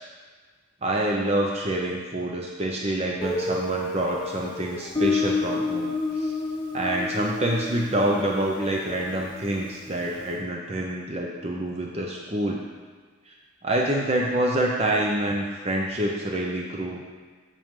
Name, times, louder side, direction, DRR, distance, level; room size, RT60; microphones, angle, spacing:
voice 1, 0.8-6.3 6.7-12.6 13.3-13.4 13.6-17.0, right 1 dB, 30° right, -1 dB, 0.7 m, -27 dB
Guitar, 3.2-9.9, left 3 dB, 25° left, 1.1 m, -30 dB
7.7 x 6.8 x 3.7 m, 1.5 s
head